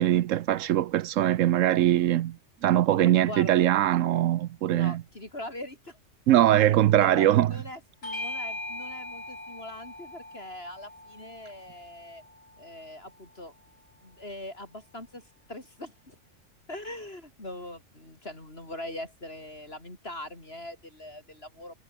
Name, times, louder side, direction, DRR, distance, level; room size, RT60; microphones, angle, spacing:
voice 1, 0.0-2.4 2.6-5.0 6.3-7.5, right 12 dB, 80° right, 1.0 m, -22 dB
voice 2, 2.9-3.6 4.7-6.0 6.3-6.4 7.0-12.2 12.6-13.5 14.0-16.2 16.7-21.7, left 1 dB, 50° left, 5.5 m, -42 dB
Bell / Doorbell, 8.0-12.9, left 1 dB, 85° left, 8.2 m, -40 dB
omnidirectional pair, 1.3 m